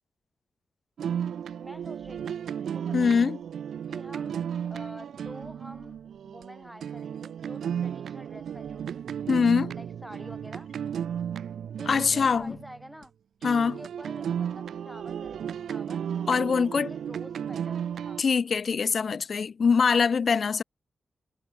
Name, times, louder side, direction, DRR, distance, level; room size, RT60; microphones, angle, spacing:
sound 1, 1.0-13.0 13.4-18.2, right 8 dB, 90° right, 2.5 m, -34 dB
voice 1, 1.6-2.5 2.7-3.3 3.9-4.4 4.6-9.0 9.7-10.7 11.8-13.1 13.6-16.1 16.5-18.2, equal, ahead, 3.9 m, -47 dB
voice 2, 2.9-3.4 9.3-9.7 11.9-12.6 13.4-13.8 16.3-16.9 18.2-20.6, left 5 dB, 45° left, 0.7 m, -23 dB
wide cardioid pair, 170°, 0 cm